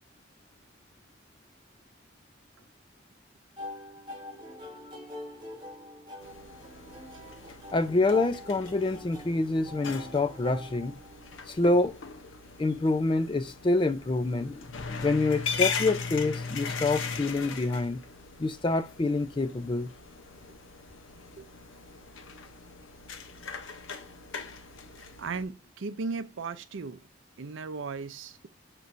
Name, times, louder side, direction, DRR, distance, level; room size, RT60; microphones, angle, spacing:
sound 1, 3.6-11.5, left 1 dB, 20° right, 1.2 m, -44 dB
sound 2, 6.2-25.4, left 5 dB, 75° left, 0.7 m, -39 dB
voice 1, 7.7-11.0 11.5-12.0 12.6-14.7 15.0-18.0 18.4-19.9, left 2 dB, 25° left, 0.4 m, -27 dB
voice 2, 25.2-27.0 27.4-28.5, right 4 dB, 70° right, 0.5 m, -36 dB
6.6 x 3.0 x 2.5 m
head